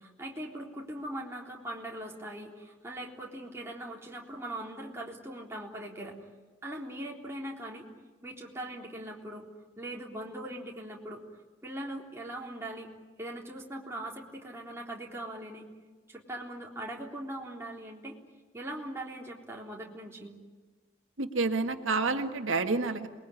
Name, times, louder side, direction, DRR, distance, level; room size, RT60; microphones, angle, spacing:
voice 1, 0.0-6.3 6.6-7.9 8.2-9.4 9.8-11.2 11.6-12.9 13.2-15.7 16.1-18.2 18.5-20.4, right 1 dB, 15° right, -1 dB, 3.7 m, -40 dB
voice 2, 21.2-23.1, right 3 dB, 90° right, 5 dB, 1.8 m, -29 dB
28.0 x 21.0 x 9.9 m, 1.4 s
head